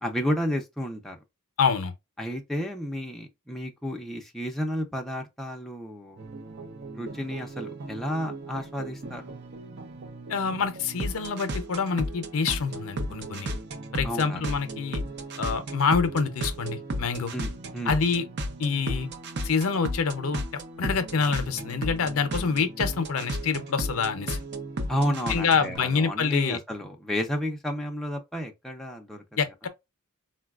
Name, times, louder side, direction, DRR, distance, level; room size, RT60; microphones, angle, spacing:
voice 1, 0.0-1.2 2.2-6.3 7.0-9.4 14.0-14.4 17.3-18.0 24.9-29.2, equal, ahead, 0.5 m, -31 dB
voice 2, 1.6-1.9 10.3-13.5 13.9-15.0 15.4-17.3 17.9-18.2 18.6-19.1 19.4-20.5 20.8-24.4 25.1-26.6 29.4-29.7, left 5 dB, 70° left, 0.5 m, -26 dB
sound 1, 6.2-25.8, right 1 dB, 50° right, 0.6 m, -35 dB
3.9 x 2.2 x 2.3 m
head